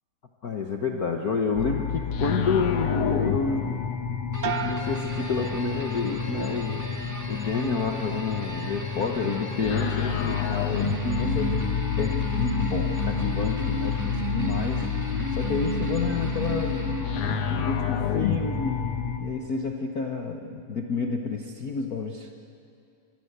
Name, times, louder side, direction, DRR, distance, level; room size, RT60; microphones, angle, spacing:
voice 1, 0.4-3.8 4.4-11.6 12.0-14.9 15.3-22.4, left 5 dB, 80° left, 3 dB, 0.8 m, -29 dB
sound 1, 1.6-19.2, left 7 dB, 55° left, 2.0 m, -29 dB
sound 2, 4.3-17.5, right 1 dB, 5° right, 1.5 m, -34 dB
sound 3, 4.4-6.2 6.6-7.1, right 7 dB, 70° right, 1.0 m, -36 dB
25.5 x 21.0 x 8.1 m, 2.6 s
omnidirectional pair, 3.5 m